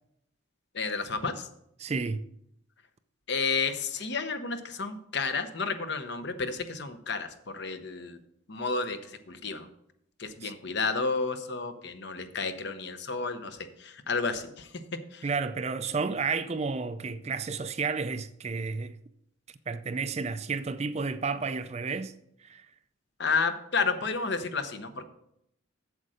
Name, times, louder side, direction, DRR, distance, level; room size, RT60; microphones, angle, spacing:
voice 1, 0.7-1.5 3.3-8.2 8.5-9.7 10.2-14.7 15.1-15.2 23.2-25.1, left 4 dB, 55° left, 0.8 m, -31 dB
voice 2, 1.8-2.2 10.4-10.5 15.2-19.0 19.7-22.1 22.4-22.7, right 4 dB, 30° right, 0.4 m, -31 dB
8.2 x 7.6 x 4.9 m
head